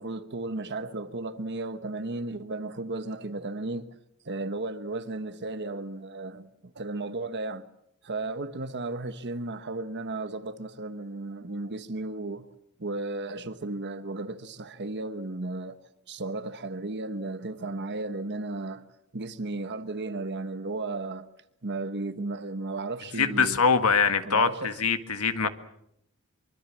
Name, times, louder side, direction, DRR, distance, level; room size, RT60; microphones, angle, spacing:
voice 1, 0.0-3.9 4.2-7.7 8.0-12.5 12.8-15.8 16.1-18.8 19.1-21.3 21.6-23.6 24.2-24.8 25.4-25.5, right 2 dB, 55° right, 1.2 m, -34 dB
voice 2, 23.2-25.5, left 5 dB, 85° left, 1.8 m, -23 dB
24.5 x 24.5 x 7.5 m
head